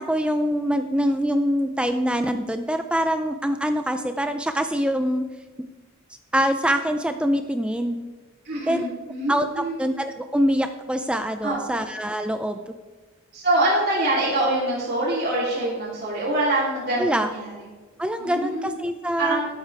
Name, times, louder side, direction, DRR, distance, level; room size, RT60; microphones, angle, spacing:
voice 1, 0.0-5.2 6.3-8.0 8.7-8.8 9.3-12.7 17.0-17.3 18.0-19.4, equal, 5° right, 8 dB, 0.4 m, -24 dB
voice 2, 8.4-9.8 11.4-11.8 13.3-17.5 18.2-18.7 19.2-19.5, right 1 dB, 50° right, -9 dB, 3.3 m, -25 dB
13.0 x 11.5 x 3.4 m, 1.3 s
head